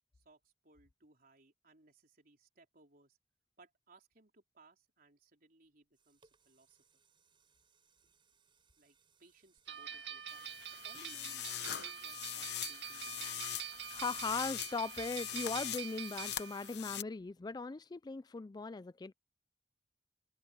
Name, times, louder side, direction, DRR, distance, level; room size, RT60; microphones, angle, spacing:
voice 1, 0.1-3.2 3.6-7.0 8.8-10.5 10.8-13.5, right 2 dB, 55° right, 3.9 m, -64 dB
sound 1, 5.6-12.0 12.5-12.6, right 5 dB, 30° right, 5.8 m, -73 dB
sound 2, 9.7-16.8, right 10 dB, 80° right, 1.9 m, -46 dB
sound 3, 10.3-17.0, left 12 dB, 65° left, 1.0 m, -43 dB
voice 2, 13.9-19.1, left 4 dB, 25° left, 0.4 m, -39 dB
head